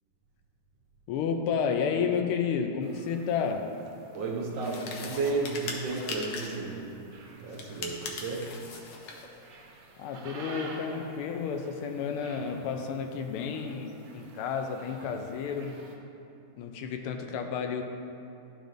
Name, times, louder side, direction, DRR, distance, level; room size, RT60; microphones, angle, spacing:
voice 1, 1.1-3.8 10.0-15.8 16.6-17.8, left 6 dB, 85° left, 1.5 m, -31 dB
sound 1, 2.8-16.0, right 3 dB, 85° right, 1.7 m, -50 dB
voice 2, 4.1-7.0 7.4-8.7, right 3 dB, 70° right, 1.3 m, -33 dB
sound 2, 4.6-6.7 7.5-9.3, left 4 dB, 65° left, 1.3 m, -40 dB
12.0 x 5.1 x 2.6 m
omnidirectional pair, 2.3 m